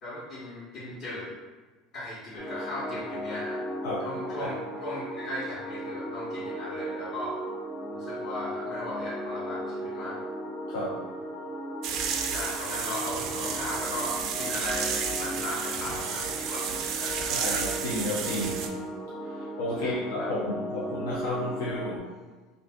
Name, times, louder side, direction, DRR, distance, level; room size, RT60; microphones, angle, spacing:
voice 1, 0.0-1.3 1.9-3.6 4.0-7.4 7.8-10.2 12.3-17.6 19.8-20.3, left 1 dB, 55° left, -10 dB, 1.0 m, -37 dB
sound 1, 2.4-22.0, equal, 10° left, 0.7 m, -36 dB
voice 2, 10.7-11.0 17.3-18.7 19.2-22.1, left 1 dB, 85° left, -5 dB, 0.5 m, -32 dB
sound 2, 11.8-18.7, right 6 dB, 60° right, 0.4 m, -32 dB
2.5 x 2.4 x 3.5 m, 1.3 s
supercardioid pair, 105°, 0 cm